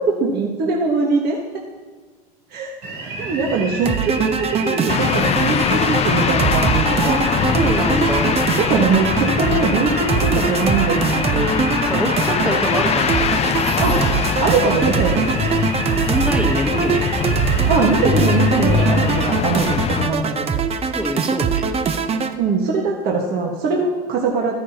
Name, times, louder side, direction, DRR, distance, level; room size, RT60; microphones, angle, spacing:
voice 1, 0.1-1.4 2.5-2.7 3.2-7.2 8.6-11.3 13.8-14.0 14.4-15.3 17.7-20.6 22.4-24.5, right 4 dB, 50° right, -1 dB, 1.5 m, -21 dB
sound 1, 2.8-19.2, right 2 dB, 90° right, 3.3 m, -31 dB
sound 2, 3.8-22.3, right 6 dB, 30° right, 0.7 m, -22 dB
sound 3, 4.9-20.1, left 7 dB, 30° left, 0.6 m, -22 dB
voice 2, 6.8-8.4 11.3-13.2 16.1-17.3 20.9-21.6, equal, 5° right, 4 dB, 1.3 m, -25 dB
13.0 x 9.8 x 2.9 m, 1.4 s
supercardioid pair, 100°, 20 cm